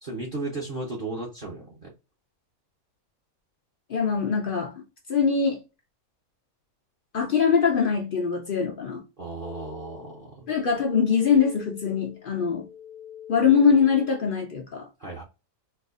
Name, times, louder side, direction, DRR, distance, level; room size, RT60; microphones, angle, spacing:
voice 1, 0.0-1.9 9.2-10.5 15.0-15.2, right 2 dB, 40° right, 0.9 m, -35 dB
voice 2, 3.9-4.7 5.1-5.6 7.1-9.0 10.5-12.7 13.3-14.9, left 6 dB, 55° left, 0.6 m, -22 dB
sound 1, 9.4-14.4, left 10 dB, ahead, 0.3 m, -45 dB
4.4 x 2.4 x 2.4 m
omnidirectional pair, 1.5 m